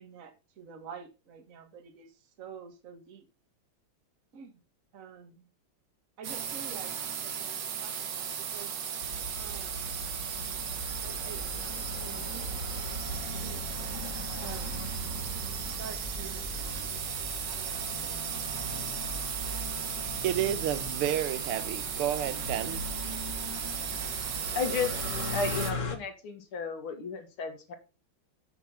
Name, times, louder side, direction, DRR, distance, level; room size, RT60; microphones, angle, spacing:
voice 1, 0.0-3.3 4.3-4.6 4.9-5.5 6.2-8.7 9.4-9.9 11.0-11.7 12.0-12.5 13.2-13.6 14.4-14.9 15.8-16.5 17.5-18.3, right 7 dB, 40° right, 1.7 m, -48 dB
sound 1, 6.2-25.7, right 7 dB, 55° right, 1.7 m, -36 dB
sound 2, 9.0-26.0, left 1 dB, 40° left, 1.4 m, -39 dB
voice 2, 20.2-22.8, right 11 dB, 85° right, 1.5 m, -30 dB
voice 3, 24.5-24.9 25.3-27.7, left 5 dB, 70° left, 2.4 m, -33 dB
8.3 x 5.5 x 5.6 m
omnidirectional pair, 2.4 m